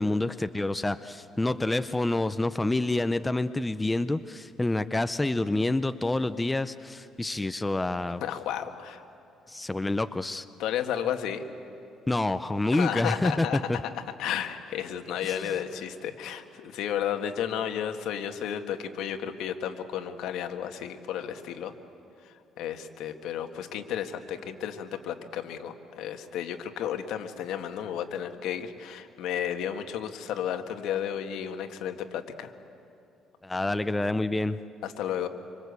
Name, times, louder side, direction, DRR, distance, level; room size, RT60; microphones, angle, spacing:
voice 1, 0.0-8.2 9.5-10.4 12.1-13.8 15.2-15.5 33.4-34.6, left 2 dB, 10° left, 12 dB, 0.6 m, -28 dB
voice 2, 8.2-9.0 10.6-11.4 12.7-13.9 14.2-21.7 22.2-32.5 34.8-35.3, left 9 dB, 75° left, 6 dB, 1.7 m, -33 dB
26.0 x 25.5 x 8.2 m, 2.6 s
cardioid pair, 130°, 0 cm